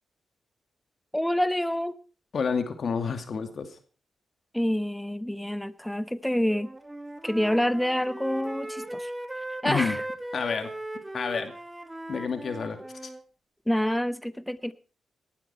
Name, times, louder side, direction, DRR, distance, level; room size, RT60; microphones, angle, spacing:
voice 1, 1.1-2.0 4.5-6.7 7.2-9.1 9.6-10.0 12.8-12.9 13.7-14.7, equal, 5° left, 13 dB, 1.1 m, -27 dB
voice 2, 2.3-3.8 9.6-10.0 10.3-10.7 11.1-11.5 12.1-13.1, left 5 dB, 60° left, 8 dB, 2.5 m, -29 dB
Wind instrument woodwind instrument, 6.5-13.2, right 1 dB, 20° right, 2.3 m, -38 dB
18.5 x 12.0 x 4.4 m, 0.37 s
supercardioid pair, 45°, 0 cm